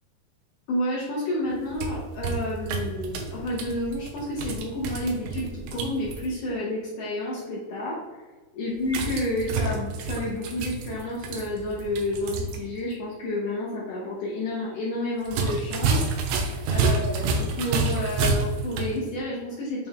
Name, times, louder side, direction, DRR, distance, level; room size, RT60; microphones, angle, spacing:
voice 1, 0.7-8.2 8.5-19.9, left 1 dB, 70° left, -5 dB, 2.1 m, -30 dB
sound 1, 1.5-6.3 8.9-12.6 12.9-13.0 15.2-19.0, right 4 dB, 80° right, 2.6 m, -29 dB
8.5 x 3.4 x 3.4 m, 1.3 s
omnidirectional pair, 4.5 m